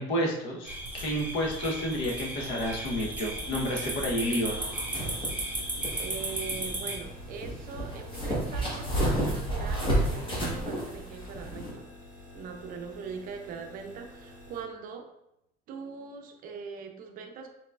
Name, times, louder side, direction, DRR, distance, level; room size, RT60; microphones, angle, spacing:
voice 1, 0.0-4.6, equal, 65° left, -1 dB, 1.0 m, -30 dB
sound 1, 0.6-7.0, right 1 dB, 5° right, 1.0 m, -35 dB
sound 2, 2.6-14.6, left 1 dB, 40° left, 1.6 m, -49 dB
sound 3, 4.5-11.7, right 1 dB, 25° left, 1.1 m, -31 dB
voice 2, 6.0-11.9 12.3-15.1 15.7-17.5, right 5 dB, 45° right, 4 dB, 0.5 m, -41 dB
4.5 x 4.0 x 2.4 m, 0.84 s
cardioid pair, 150°, 20 cm